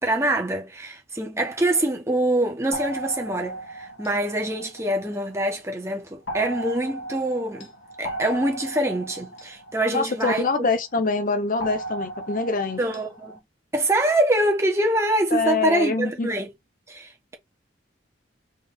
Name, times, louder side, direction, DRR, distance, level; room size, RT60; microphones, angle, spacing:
voice 1, 0.0-7.7 8.0-10.5 12.8-13.4 13.7-16.5 16.9-17.3, right 1 dB, 15° right, 1.3 m, -25 dB
sound 1, 2.7-5.5 6.3-10.8 11.6-13.4, right 2 dB, 90° left, 1.6 m, -36 dB
voice 2, 9.9-12.8 15.3-16.3, left 3 dB, 45° left, 0.7 m, -24 dB
4.1 x 3.5 x 3.6 m
head